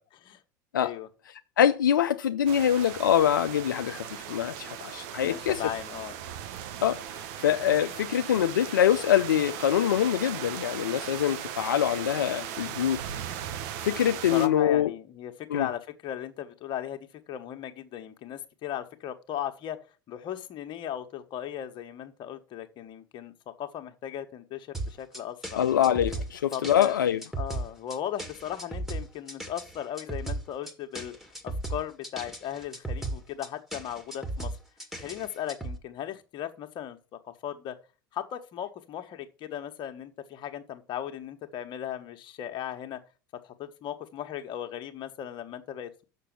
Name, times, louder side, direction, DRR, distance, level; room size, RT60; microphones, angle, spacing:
voice 1, 0.7-1.1 5.2-6.1 14.3-19.8 20.1-25.6 26.5-27.0 27.4-31.1 31.4-34.5 34.9-37.8 38.1-43.0 43.4-46.0, left 10 dB, 50° left, 1.4 m, -37 dB
voice 2, 1.6-5.6 6.8-13.0 13.8-14.9 15.5-15.7 25.6-27.2, left 10 dB, 85° left, 0.5 m, -24 dB
sound 1, 2.5-14.5, right 10 dB, 65° right, 1.0 m, -38 dB
sound 2, 24.7-35.8, right 2 dB, 5° right, 1.9 m, -36 dB
6.7 x 6.2 x 7.2 m
hypercardioid pair, 80°, 11 cm